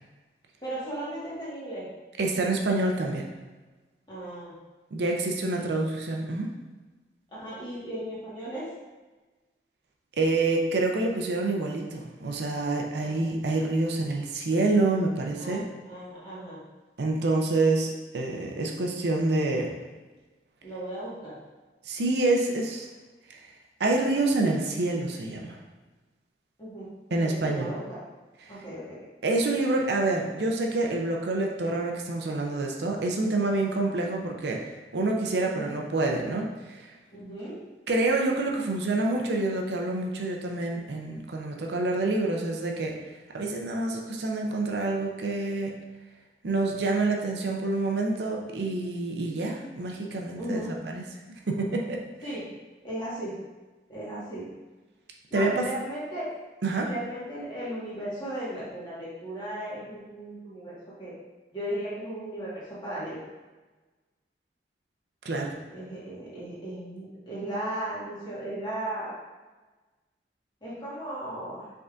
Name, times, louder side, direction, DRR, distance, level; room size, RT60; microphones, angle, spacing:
voice 1, 0.6-1.9 4.1-4.5 5.5-5.8 7.3-8.7 13.0-13.3 15.4-16.6 20.6-21.4 26.6-26.9 27.2-28.0 28.5-29.0 35.4-35.7 37.1-37.6 50.4-50.8 52.2-52.5 52.8-53.4 53.9-54.5 55.3-56.3 56.8-61.1 61.5-63.2 65.7-69.1 70.6-71.6, right 1 dB, 25° left, -9 dB, 1.5 m, -36 dB
voice 2, 2.2-3.3 4.9-6.5 10.2-15.6 17.0-19.8 21.8-22.9 23.3-23.5 23.8-25.6 27.1-27.7 29.2-36.9 37.9-43.0 43.3-45.7 46.4-51.0 51.5-52.0 55.3-55.7 56.6-56.9 65.2-65.5, right 2 dB, 70° right, 1 dB, 0.5 m, -27 dB
5.0 x 3.6 x 2.5 m, 1.2 s
head